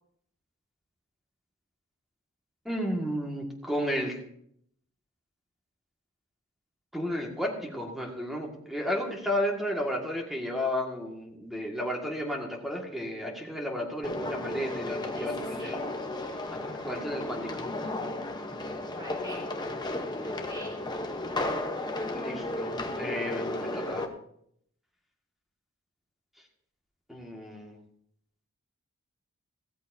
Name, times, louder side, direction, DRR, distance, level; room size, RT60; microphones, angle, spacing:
voice 1, 2.7-4.2 6.9-15.8 16.5-17.7 22.1-24.1 27.1-27.8, equal, ahead, 0 dB, 1.9 m, -33 dB
sound 1, 14.0-24.1, left 2 dB, 20° left, 0.9 m, -34 dB
voice 2, 15.1-15.8 18.9-19.4 20.2-20.8 23.0-23.7, right 1 dB, 20° right, -5 dB, 2.7 m, -46 dB
16.5 x 13.5 x 2.7 m, 0.70 s
head